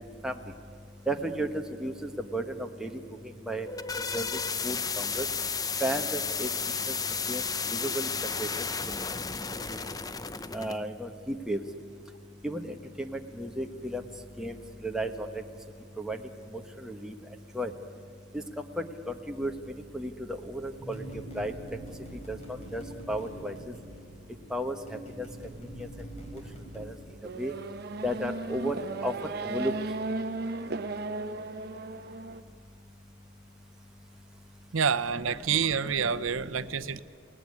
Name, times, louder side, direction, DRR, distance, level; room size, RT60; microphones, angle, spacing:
voice 1, 1.1-2.9 3.5-3.7 4.1-4.3 4.6-5.2 5.8-6.5 7.3-7.4 7.7-8.1 8.4-8.5 9.5-9.6 10.5-11.6 12.4-14.0 14.4-14.5 14.8-15.3 16.0-16.2 16.5-17.1 17.5-17.7 18.3-18.4 18.8-18.9 19.3-19.5 19.9-21.0 21.3-21.5 22.3-22.4 22.7-23.7 24.5-24.7 25.2-25.3 25.8-25.9 26.7-26.9 27.4-27.5 28.0-28.7 29.0-29.1 29.4-29.7, right 1 dB, 5° right, 3 dB, 1.3 m, -33 dB
sound 1, 3.5-10.8, left 5 dB, 20° left, 0.6 m, -33 dB
sound 2, 20.8-26.8, right 1 dB, 35° left, 4.3 m, -44 dB
Race car auto racing / Accelerating revving vroom, 27.2-32.4, right 3 dB, 50° right, 0.9 m, -35 dB
voice 2, 34.7-37.0, right 6 dB, 80° right, 11 dB, 0.7 m, -28 dB
29.0 x 18.5 x 9.8 m, 2.2 s
head